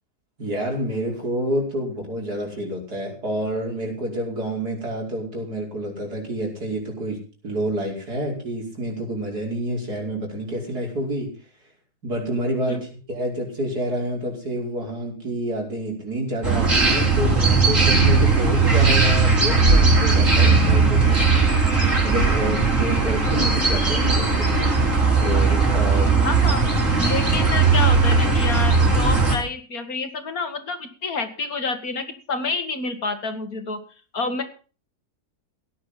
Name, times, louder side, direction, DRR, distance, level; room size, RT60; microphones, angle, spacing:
voice 1, 0.4-11.3 12.0-21.2 22.0-24.8 25.2-26.2, right 1 dB, 90° right, 0 dB, 5.8 m, -28 dB
sound 1, 16.4-29.3, right 4 dB, 55° right, 4.7 m, -18 dB
voice 2, 26.2-26.7 27.0-33.8 34.1-34.4, left 3 dB, 65° left, 8 dB, 2.5 m, -28 dB
17.0 x 10.0 x 5.7 m, 0.38 s
omnidirectional pair, 1.6 m